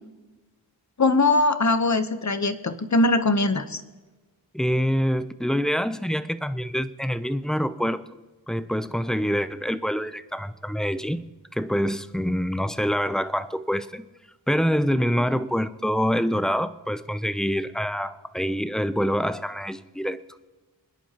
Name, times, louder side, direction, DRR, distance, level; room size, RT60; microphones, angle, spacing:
voice 1, 1.0-3.8, left 2 dB, 45° left, 10 dB, 0.9 m, -21 dB
voice 2, 4.5-8.0 8.5-11.2 11.5-14.1 14.5-20.2, equal, ahead, 13 dB, 0.5 m, -26 dB
25.0 x 10.5 x 2.9 m, 1.2 s
wide cardioid pair, 75°, 40 cm